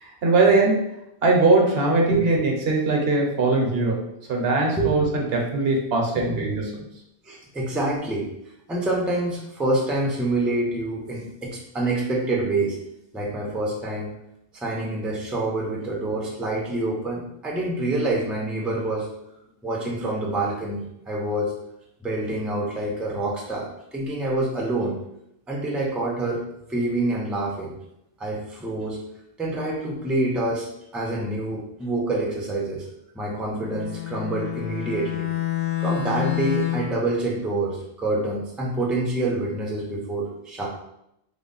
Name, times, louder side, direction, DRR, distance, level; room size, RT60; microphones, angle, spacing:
voice 1, 0.0-0.9 1.2-4.0 4.3-6.7, right 3 dB, 75° right, 0 dB, 1.0 m, -21 dB
voice 2, 6.2-6.5 7.2-8.3 8.7-12.8 13.1-14.2 14.5-19.1 19.6-21.5 22.0-25.0 25.5-26.4 26.7-27.7 28.2-29.0 29.4-30.7 30.9-32.9 33.1-35.3 35.8-40.7, right 2 dB, ahead, -2 dB, 0.5 m, -26 dB
Bowed string instrument, 33.6-37.0, left 14 dB, 65° left, 0.7 m, -28 dB
3.5 x 2.1 x 3.9 m, 0.81 s
omnidirectional pair, 1.1 m